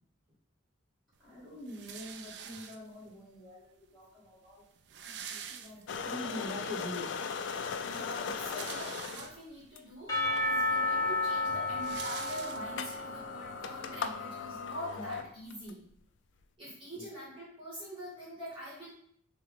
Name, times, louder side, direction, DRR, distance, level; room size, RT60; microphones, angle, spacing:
voice 1, 1.2-4.7 5.0-7.1 16.9-17.0, left 1 dB, ahead, -10 dB, 1.7 m, -44 dB
sound 1, 1.7-3.1 4.0-4.1 4.3-4.4 4.6-6.2 6.6-6.7 8.1-9.7 10.3-10.4 10.7-13.0, right 8 dB, 55° right, 0.3 m, -46 dB
sound 2, 5.9-9.3 9.8-9.9 10.2-15.7, left 5 dB, 60° left, 0.3 m, -39 dB
voice 2, 7.8-15.8 16.6-18.9, equal, 25° right, -7 dB, 1.2 m, -44 dB
Percussion / Church bell, 10.1-14.0, left 2 dB, 20° left, 0.8 m, -32 dB
5.9 x 2.2 x 3.2 m, 0.65 s
head